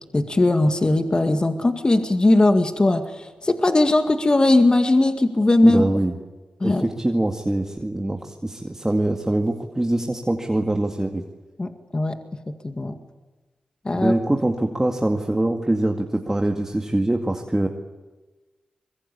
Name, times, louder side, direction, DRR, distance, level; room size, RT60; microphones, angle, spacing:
voice 1, 0.1-5.8 6.6-6.8 11.6-12.1 12.5-13.0 13.9-14.2, left 2 dB, 35° left, 7 dB, 2.1 m, -19 dB
voice 2, 5.6-6.1 6.6-11.2 13.9-17.7, right 1 dB, 20° right, 3 dB, 2.1 m, -23 dB
24.0 x 21.5 x 8.6 m, 1.2 s
cardioid pair, 45°, 3 cm